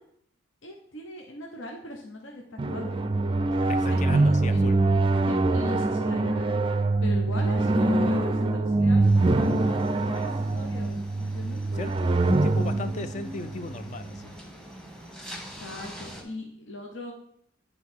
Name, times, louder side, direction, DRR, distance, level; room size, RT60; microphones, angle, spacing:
voice 1, 0.6-3.0 3.5-4.6 5.3-6.5 7.0-11.6 15.5-17.1, left 2 dB, 75° left, 1 dB, 1.0 m, -40 dB
sound 1, 2.6-14.2, right 2 dB, 25° right, 0.4 m, -24 dB
voice 2, 3.7-4.8 7.2-7.3 11.7-14.4, left 3 dB, 40° left, 10 dB, 0.4 m, -37 dB
sound 2, 9.0-16.2, equal, 5° left, 1.2 m, -44 dB
9.3 x 3.9 x 4.5 m, 0.67 s
head